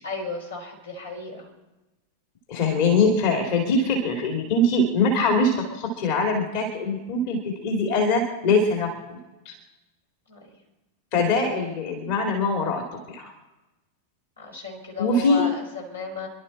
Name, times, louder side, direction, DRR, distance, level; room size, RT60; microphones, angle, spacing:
voice 1, 0.0-1.5 10.3-10.4 14.4-16.3, left 3 dB, 80° left, -1 dB, 4.0 m, -34 dB
voice 2, 2.5-8.9 9.4-9.5 11.1-13.3 15.0-15.4, left 2 dB, 50° left, 2 dB, 2.6 m, -23 dB
27.5 x 11.5 x 4.3 m, 1.1 s
figure-of-eight pair, 90°, 0 cm